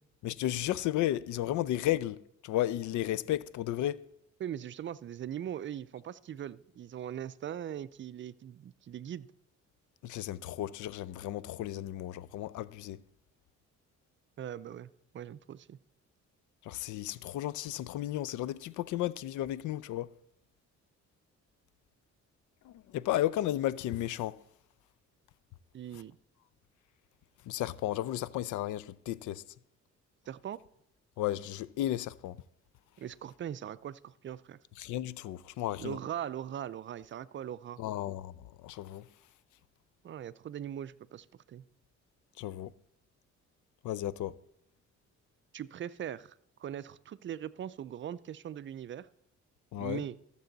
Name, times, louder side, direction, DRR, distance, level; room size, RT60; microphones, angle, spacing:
voice 1, 0.2-4.0 10.0-13.0 16.6-20.1 22.7-24.4 27.5-29.4 31.2-32.4 34.8-36.0 37.8-38.3 38.6-39.1 42.4-42.7 43.8-44.3 49.7-50.0, left 13 dB, 80° left, 0.5 m, -33 dB
voice 2, 4.4-9.3 14.4-15.8 25.7-26.2 30.3-30.6 33.0-34.6 35.8-37.8 40.0-41.6 45.5-46.3 46.6-49.1 49.8-50.2, right 10 dB, 40° right, 0.4 m, -40 dB
14.0 x 6.9 x 4.0 m
cardioid pair, 90°, 30 cm